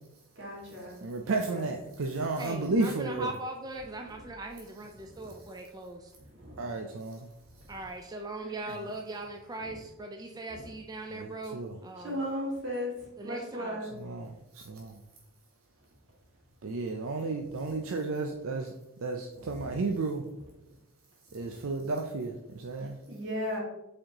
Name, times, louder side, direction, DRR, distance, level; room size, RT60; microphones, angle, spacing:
voice 1, 0.4-1.0 1.5-1.7 4.1-4.2 5.1-5.3 6.3-6.6 8.4-8.5 10.5-10.6 12.0-12.9 13.2-13.9 17.7-18.0 19.3-19.8 22.8-23.6, equal, 60° right, -3 dB, 2.0 m, -37 dB
voice 2, 1.0-3.3 6.6-7.3 11.1-11.7 14.0-14.9 16.6-18.7 19.0-20.2 21.3-23.0, right 3 dB, 75° right, 3 dB, 0.5 m, -32 dB
voice 3, 2.4-6.1 7.7-12.2 13.2-13.8, right 2 dB, 20° right, 3 dB, 0.3 m, -40 dB
7.6 x 4.2 x 2.9 m, 0.93 s
head